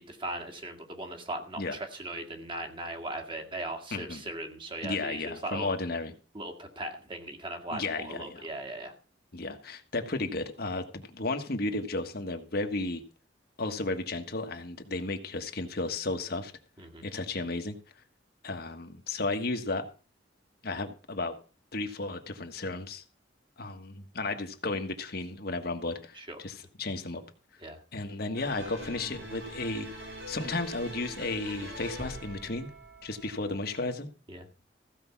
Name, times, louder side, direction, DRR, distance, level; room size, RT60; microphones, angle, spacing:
voice 1, 0.0-5.7 6.3-8.9 16.8-17.1 26.1-26.4 27.6-27.8 34.3-34.5, right 1 dB, 30° right, 4 dB, 2.0 m, -38 dB
voice 2, 3.9-4.2 4.8-6.1 7.7-8.5 9.3-13.0 13.6-16.5 17.0-17.8 18.4-19.9 20.6-21.3 21.7-23.0 23.6-27.2 27.9-32.7 33.0-34.1, left 2 dB, 55° left, 6 dB, 1.5 m, -34 dB
sound 1, 28.3-33.8, equal, 90° right, 4.5 m, -43 dB
15.5 x 5.3 x 7.1 m, 0.37 s
head